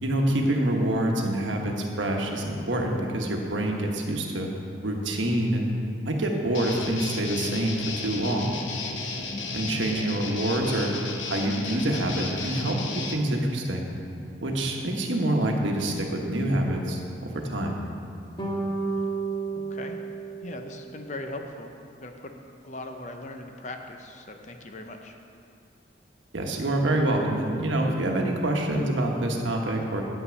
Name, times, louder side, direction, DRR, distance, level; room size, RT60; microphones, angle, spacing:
voice 1, 0.0-4.5 4.8-5.7 6.0-8.5 9.5-10.9 11.3-13.9 14.4-17.8 26.3-30.0, right 1 dB, 80° right, 1 dB, 1.2 m, -26 dB
Guitar, 6.5-13.2, left 3 dB, 80° left, 0.8 m, -34 dB
sound 1, 18.4-20.9, right 3 dB, 25° left, 1.2 m, -31 dB
voice 2, 19.5-20.0 20.4-21.7 22.0-22.3 22.6-25.2, left 2 dB, 40° left, 5 dB, 0.6 m, -39 dB
9.5 x 5.8 x 6.3 m, 2.5 s
head